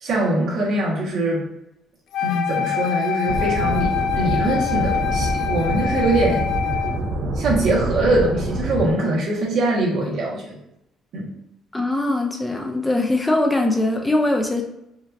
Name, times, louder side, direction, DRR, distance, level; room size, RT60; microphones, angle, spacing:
voice 1, 0.0-1.4 2.2-6.5 7.3-10.6 11.1-11.3, right 1 dB, 65° right, -4 dB, 1.4 m, -22 dB
Wind instrument woodwind instrument, 2.1-7.0, left 9 dB, 70° left, 0.4 m, -25 dB
sound 1, 3.3-8.9, right 2 dB, 90° right, 0.6 m, -26 dB
voice 2, 11.7-14.6, left 2 dB, 10° left, 2 dB, 0.4 m, -21 dB
5.0 x 2.6 x 2.6 m, 0.84 s
cardioid pair, 140°, 0 cm